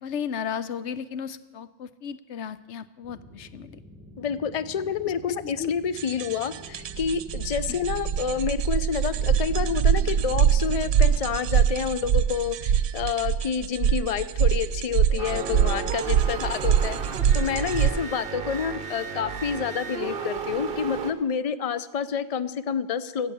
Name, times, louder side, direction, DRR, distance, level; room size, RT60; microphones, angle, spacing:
voice 1, 0.0-3.8 5.3-5.7, left 7 dB, 70° left, 14 dB, 0.9 m, -34 dB
sound 1, 3.0-8.5, left 2 dB, 10° right, 1.0 m, -48 dB
voice 2, 4.2-23.3, left 7 dB, 55° left, 14 dB, 0.4 m, -28 dB
sound 2, 6.0-17.9, right 8 dB, 90° right, 1.0 m, -24 dB
sound 3, 15.2-21.1, right 6 dB, 50° right, 1.1 m, -34 dB
14.5 x 7.4 x 8.5 m, 1.2 s
omnidirectional pair, 1.2 m